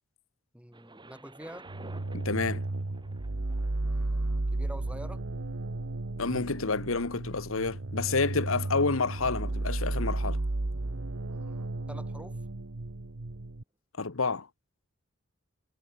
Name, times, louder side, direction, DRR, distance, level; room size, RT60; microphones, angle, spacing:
voice 1, 0.5-1.7 3.8-5.2 11.3-12.4, right 1 dB, 5° right, 5.4 m, -47 dB
Thunder, 0.7-12.6 13.3-13.4, right 2 dB, 20° right, 4.3 m, -56 dB
sound 1, 1.7-13.6, right 2 dB, 70° right, 1.2 m, -33 dB
voice 2, 2.1-2.6 6.2-10.4 14.0-14.5, left 4 dB, 75° left, 1.2 m, -29 dB
head